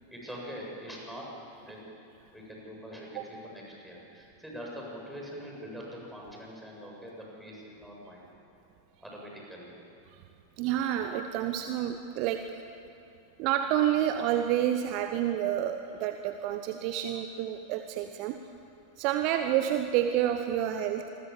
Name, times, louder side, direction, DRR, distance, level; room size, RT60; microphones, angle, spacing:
voice 1, 0.1-1.3 1.6-1.9 2.3-8.3 9.0-9.7, equal, 5° right, -3 dB, 7.9 m, -43 dB
voice 2, 10.6-12.5 13.4-18.4 19.0-21.1, right 11 dB, 45° right, 7 dB, 1.2 m, -29 dB
27.5 x 22.5 x 7.4 m, 2.7 s
figure-of-eight pair, 90°, 0 cm